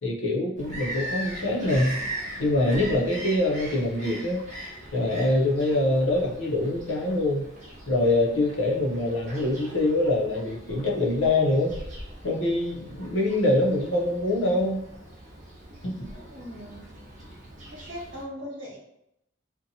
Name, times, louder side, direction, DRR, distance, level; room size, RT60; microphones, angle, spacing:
voice 1, 0.0-2.0 2.4-4.4 4.9-7.4 7.9-11.7 12.2-14.8 15.8-15.9, left 1 dB, 70° left, -2 dB, 0.6 m, -24 dB
Bird vocalization bird call bird song, 0.6-18.2, right 1 dB, 40° right, 0.7 m, -40 dB
voice 2, 16.3-17.0 17.7-18.8, equal, 70° right, -4 dB, 1.1 m, -39 dB
2.6 x 2.2 x 2.6 m, 0.81 s
head